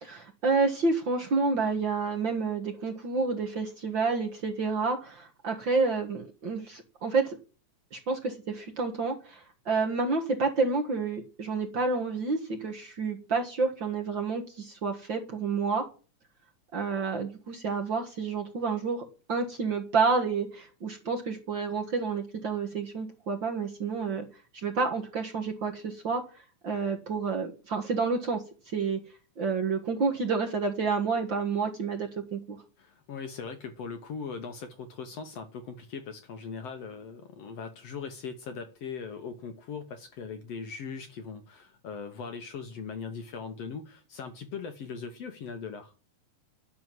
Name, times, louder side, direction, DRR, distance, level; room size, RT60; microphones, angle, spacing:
voice 1, 0.0-7.4 7.9-15.9 16.7-24.3 24.6-26.2 26.6-28.4 28.7-29.0 29.4-32.6, right 4 dB, 45° right, 1.8 m, -29 dB
voice 2, 32.8-45.9, left 5 dB, 60° left, 1.9 m, -40 dB
11.0 x 6.9 x 9.3 m
omnidirectional pair, 3.7 m